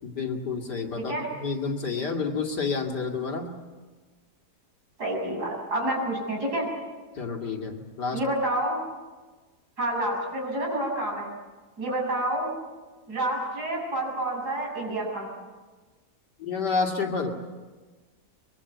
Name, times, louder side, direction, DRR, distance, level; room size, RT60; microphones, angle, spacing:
voice 1, 0.0-1.1 1.4-3.5 7.2-8.2 16.4-17.3, left 4 dB, 85° left, 2 dB, 3.1 m, -29 dB
voice 2, 5.0-6.7 8.1-8.8 9.8-11.3 11.8-12.5 13.1-15.3, right 1 dB, 75° right, -1 dB, 7.7 m, -28 dB
23.5 x 23.0 x 8.2 m, 1.3 s
omnidirectional pair, 1.7 m